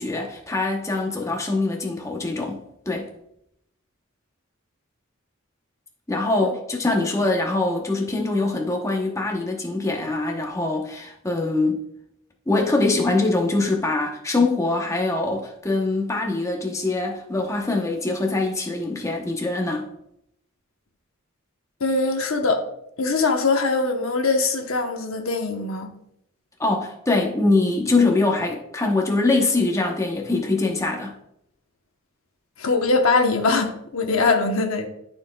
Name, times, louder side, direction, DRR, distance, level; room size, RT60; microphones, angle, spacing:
voice 1, 0.0-3.1 6.1-11.8 12.5-19.9 26.6-31.2, left 2 dB, 15° left, 0.8 m, -23 dB
voice 2, 21.8-22.6 23.0-25.9 32.6-34.9, left 3 dB, 85° left, 1.0 m, -22 dB
13.0 x 4.4 x 2.3 m
head